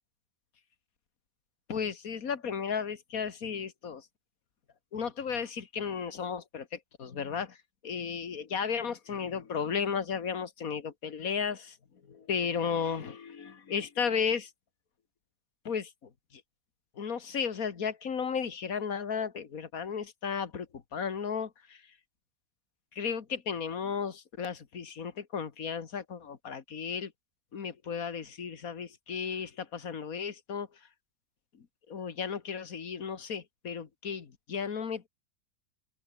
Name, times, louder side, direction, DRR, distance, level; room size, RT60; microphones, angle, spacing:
voice 1, 1.7-4.1 4.9-7.6 7.8-11.8 12.0-14.5 15.6-16.4 17.0-21.9 22.9-27.1 27.5-30.9 31.5-35.1, left 6 dB, 55° left, 2.1 m, -34 dB
open air
omnidirectional pair, 1.7 m